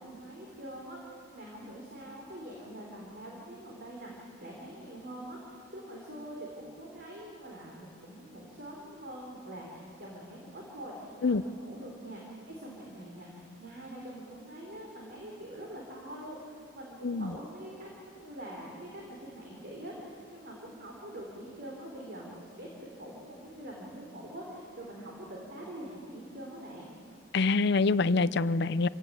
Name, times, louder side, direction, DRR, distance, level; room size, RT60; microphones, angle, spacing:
voice 1, 0.0-26.9, right 1 dB, 50° right, -2 dB, 4.1 m, -44 dB
voice 2, 27.3-28.9, left 3 dB, 55° left, 16 dB, 0.6 m, -25 dB
28.0 x 17.0 x 8.7 m, 2.4 s
head